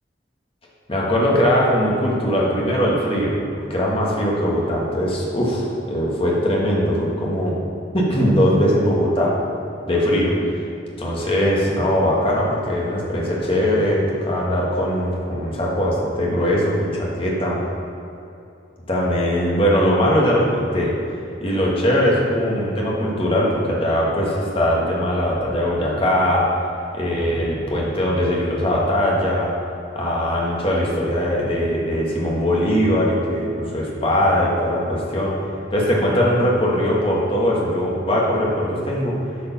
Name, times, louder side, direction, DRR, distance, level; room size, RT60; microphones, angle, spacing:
voice 1, 0.9-3.4 3.7-7.5 7.9-9.3 9.9-10.3 11.0-17.6 18.9-20.9 21.4-26.5 26.9-29.5 29.9-35.3 35.7-39.1, equal, 30° left, -4 dB, 1.6 m, -20 dB
8.6 x 5.1 x 5.9 m, 2.6 s
head